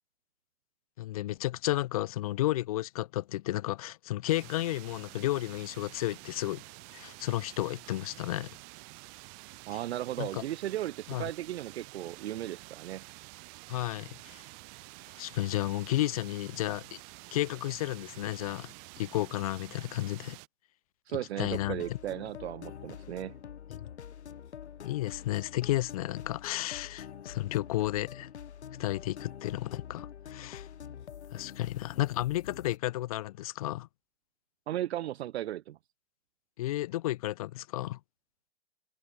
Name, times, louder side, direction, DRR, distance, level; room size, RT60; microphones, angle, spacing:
voice 1, 1.0-6.6 6.9-8.5 10.2-10.4 11.1-11.3 13.7-14.4 15.2-17.0 17.3-20.4 21.4-21.8 23.7-23.8 24.8-28.3 28.8-30.7 31.3-33.9 36.6-38.0, left 15 dB, 35° left, 1.0 m, -32 dB
sound 1, 4.3-20.5, right 40 dB or more, 25° right, 3.6 m, -49 dB
voice 2, 9.7-13.1 21.1-23.3 34.7-35.8, right 13 dB, 75° right, 0.5 m, -36 dB
sound 2, 21.4-32.8, left 8 dB, 85° left, 3.4 m, -46 dB
hypercardioid pair, 170°, 33 cm